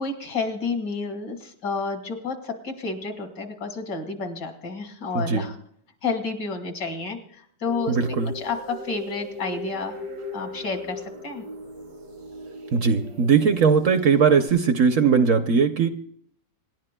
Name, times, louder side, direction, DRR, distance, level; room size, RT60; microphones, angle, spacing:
voice 1, 0.0-5.5 6.0-10.0 10.3-11.4, left 4 dB, 80° left, 6 dB, 2.5 m, -30 dB
sound 1, 7.6-14.5, left 1 dB, 85° right, 2.8 m, -38 dB
voice 2, 7.9-8.3 12.7-15.9, right 6 dB, 60° right, 9 dB, 0.9 m, -19 dB
27.0 x 11.5 x 2.2 m, 0.64 s
omnidirectional pair, 1.8 m